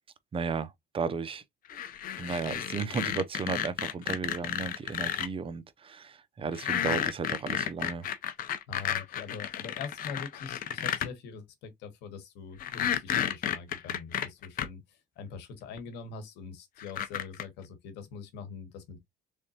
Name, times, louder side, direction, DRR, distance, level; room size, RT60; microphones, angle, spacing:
voice 1, 0.3-1.4 1.7-1.8 2.2-8.1, right 5 dB, 35° right, 0.5 m, -34 dB
sound 1, 1.7-5.3 6.5-11.1 12.6-14.7 15.8-15.9 16.8-17.4, left 10 dB, 55° left, 0.6 m, -32 dB
voice 2, 8.7-19.0, left 5 dB, 85° left, 1.2 m, -43 dB
3.7 x 3.4 x 2.8 m
cardioid pair, 110°, 17 cm